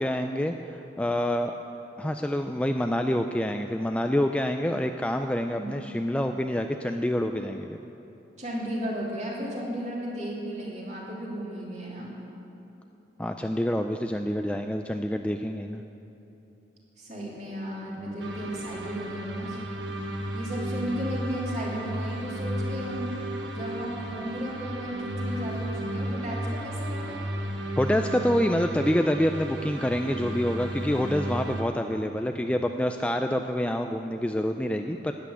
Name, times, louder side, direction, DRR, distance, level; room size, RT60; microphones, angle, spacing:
voice 1, 0.0-1.5 2.0-7.8 13.2-15.8 18.0-18.2 27.8-35.1, equal, 5° left, 5 dB, 0.3 m, -27 dB
voice 2, 8.4-12.1 17.0-19.6 20.3-23.1 23.5-27.2, equal, 40° right, -4 dB, 3.0 m, -34 dB
sound 1, 18.2-31.6, right 1 dB, 75° right, 1.2 m, -33 dB
12.5 x 8.4 x 9.7 m, 2.9 s
head